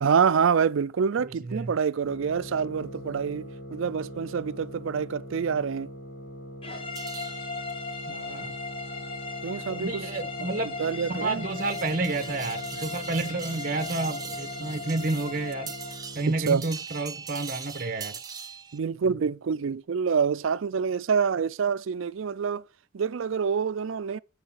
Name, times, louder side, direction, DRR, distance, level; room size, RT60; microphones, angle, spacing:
voice 1, 0.0-5.9 9.4-10.0 10.8-11.4 16.5-16.6 18.7-22.6 22.9-24.2, right 6 dB, 80° right, 0.4 m, -26 dB
voice 2, 1.2-1.7 8.1-8.5 9.7-10.7 11.1-15.7 16.1-18.1, right 2 dB, 45° right, 1.0 m, -30 dB
sound 1, 2.0-16.6, equal, 60° left, 1.4 m, -42 dB
sound 2, 6.6-16.1, left 3 dB, 25° left, 1.3 m, -38 dB
sound 3, 7.0-18.8, right 6 dB, 20° right, 0.5 m, -43 dB
7.8 x 6.6 x 7.2 m
head